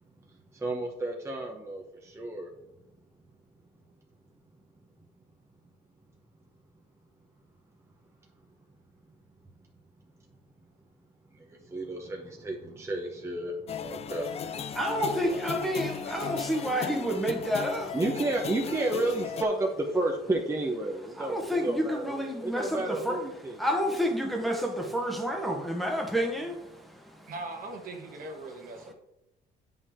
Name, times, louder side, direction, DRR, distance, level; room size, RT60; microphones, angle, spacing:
voice 1, 0.5-2.5 11.5-14.3 15.3-15.4 17.9-23.6, right 2 dB, 15° right, 0 dB, 1.0 m, -31 dB
sound 1, 13.7-19.4, left 7 dB, 35° left, 0.5 m, -36 dB
voice 2, 14.7-18.0 21.2-27.3, equal, ahead, 1 dB, 1.3 m, -30 dB
voice 3, 27.3-28.9, right 2 dB, 55° right, 3 dB, 1.6 m, -40 dB
8.2 x 5.5 x 3.7 m, 0.85 s
cardioid pair, 110°, 17 cm